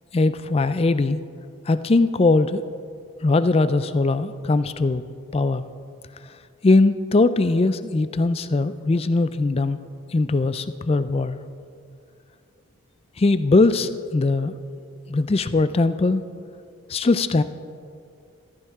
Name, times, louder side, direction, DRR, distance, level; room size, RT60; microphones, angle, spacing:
voice 1, 0.1-1.2 1.7-2.6 3.2-5.0 5.3-5.6 6.6-9.8 10.1-11.4 13.2-14.6 15.1-16.2 16.9-17.4, left 3 dB, 25° left, 13 dB, 0.3 m, -20 dB
14.5 x 14.0 x 3.6 m, 2.4 s
head